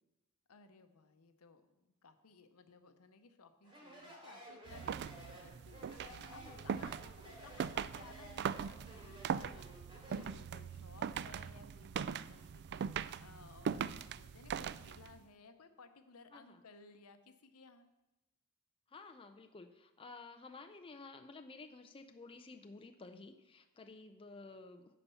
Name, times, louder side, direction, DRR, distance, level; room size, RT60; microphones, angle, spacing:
voice 1, 0.5-17.9, left 4 dB, 75° left, 9 dB, 0.8 m, -60 dB
Speech, 3.6-10.4, equal, 25° right, 2.8 m, -54 dB
sound 1, 4.7-15.2, right 7 dB, 50° right, 0.3 m, -41 dB
voice 2, 6.3-6.6 16.3-16.6 18.9-25.0, left 3 dB, 25° left, 6 dB, 0.4 m, -53 dB
11.0 x 4.2 x 6.9 m, 1.0 s
head